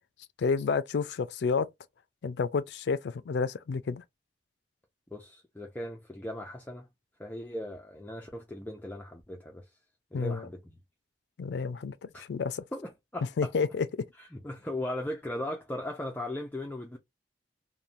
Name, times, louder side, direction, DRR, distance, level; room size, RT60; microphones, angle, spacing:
voice 1, 0.4-1.7 2.2-4.0 10.1-10.5 11.4-12.6 13.4-14.1, left 5 dB, 75° left, 0.4 m, -30 dB
voice 2, 5.1-6.9 7.2-9.7 10.1-10.7 12.1-12.2 12.7-13.5 14.2-17.0, left 1 dB, 10° left, 0.4 m, -38 dB
3.0 x 2.1 x 2.5 m
head